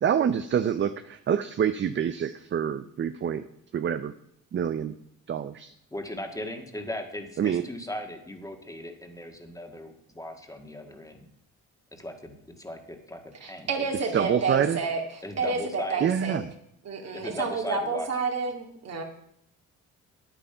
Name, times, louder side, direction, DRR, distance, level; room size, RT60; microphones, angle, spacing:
voice 1, 0.0-3.4 3.7-4.1 4.5-4.9 5.3-5.7 7.4-7.6 14.1-14.8 16.0-16.5, right 8 dB, 40° right, 11 dB, 0.6 m, -26 dB
voice 2, 5.9-11.3 11.9-13.9 15.2-16.1 17.1-18.2, left 1 dB, 10° left, 5 dB, 1.7 m, -38 dB
voice 3, 13.4-16.4 16.8-19.0, right 4 dB, 55° right, 3 dB, 2.3 m, -30 dB
9.7 x 8.9 x 5.6 m, 0.74 s
cardioid pair, 90°, 30 cm